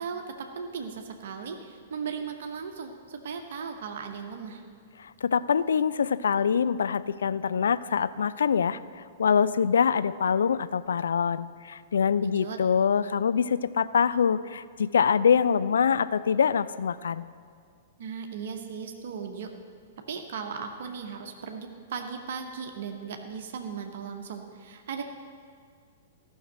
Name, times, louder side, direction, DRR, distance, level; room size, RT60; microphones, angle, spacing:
voice 1, 0.0-4.6 12.2-12.6 18.0-19.5 20.1-25.0, right 6 dB, 55° right, 4 dB, 1.0 m, -37 dB
voice 2, 5.0-8.8 9.2-17.2, left 7 dB, 65° left, 15 dB, 0.4 m, -24 dB
14.5 x 6.4 x 7.5 m, 2.2 s
figure-of-eight pair, 105°, 0 cm